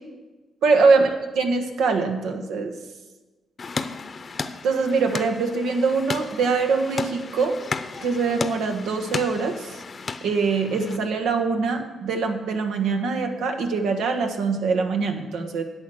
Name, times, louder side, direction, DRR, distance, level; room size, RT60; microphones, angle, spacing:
voice 1, 0.6-2.7 4.6-7.5 8.0-9.8 10.2-15.6, right 4 dB, 85° right, 5 dB, 1.3 m, -23 dB
sound 1, 3.6-11.0, left 4 dB, 40° left, 0.7 m, -34 dB
10.5 x 8.1 x 6.4 m, 1.2 s
cardioid pair, 85°, 0 cm